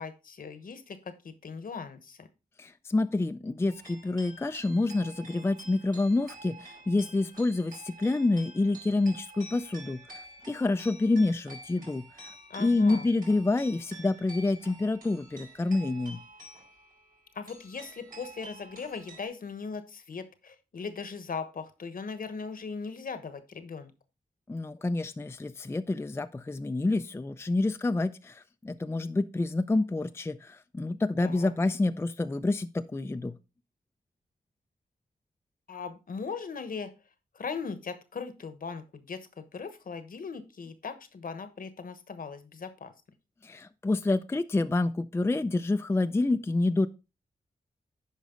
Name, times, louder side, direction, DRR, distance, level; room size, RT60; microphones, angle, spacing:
voice 1, 0.0-2.3 12.5-13.1 17.3-23.9 31.2-31.5 35.7-36.9 37.3-42.9, left 5 dB, 65° left, 1.1 m, -39 dB
voice 2, 2.6-10.2 10.5-12.3 12.6-16.2 24.5-33.4 43.4-46.9, left 2 dB, 15° left, 0.4 m, -28 dB
sound 1, 3.7-19.3, right 2 dB, 65° right, 4.3 m, -49 dB
9.2 x 5.2 x 3.7 m
cardioid pair, 70°, 16 cm